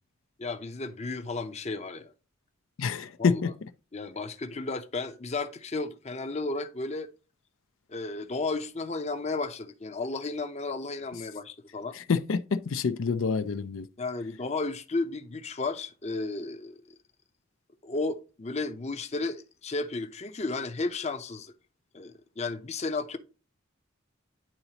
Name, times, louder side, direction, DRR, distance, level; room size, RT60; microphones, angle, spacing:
voice 1, 0.4-2.1 3.2-3.4 3.9-7.1 7.9-12.0 14.0-16.8 17.8-21.5 21.9-23.2, left 3 dB, 35° left, 0.6 m, -33 dB
voice 2, 2.8-3.5 11.9-13.9, left 5 dB, 80° left, 0.5 m, -27 dB
10.5 x 4.0 x 2.8 m
head